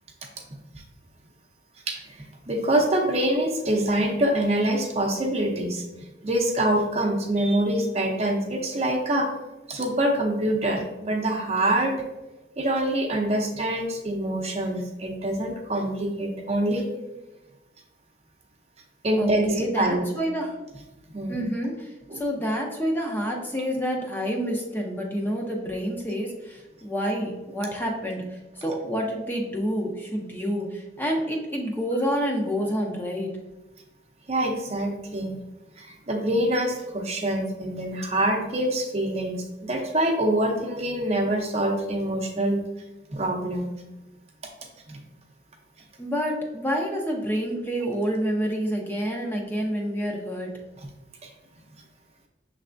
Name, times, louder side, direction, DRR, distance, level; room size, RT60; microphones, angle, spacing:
voice 1, 1.9-5.8 6.2-9.3 9.7-12.0 12.6-16.9 19.0-20.0 21.1-21.4 22.1-22.2 34.3-35.4 35.8-42.6 43.1-43.7 44.9-45.0 51.2-51.3, right 1 dB, 35° right, 2 dB, 0.7 m, -25 dB
voice 2, 19.2-20.6 21.3-33.3 46.0-50.5, equal, 10° left, 0 dB, 0.5 m, -28 dB
6.3 x 3.3 x 2.5 m, 1.1 s
head